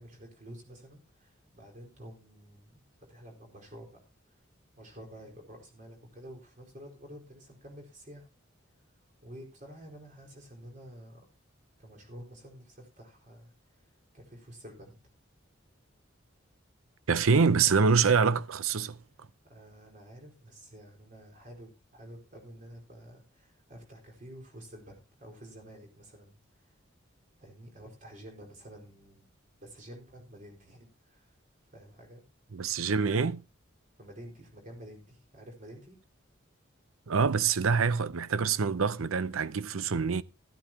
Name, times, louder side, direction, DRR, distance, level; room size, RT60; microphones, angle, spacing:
voice 1, 0.0-4.0 4.3-4.4 4.7-8.3 9.2-11.3 11.8-13.5 14.1-15.0 19.4-26.4 27.4-29.3 29.6-31.4 31.7-32.2 34.0-36.0, equal, 40° right, 4.6 m, -50 dB
voice 2, 17.1-19.0 32.5-33.4 37.1-40.2, right 5 dB, 85° right, 0.7 m, -25 dB
14.0 x 13.0 x 2.8 m
head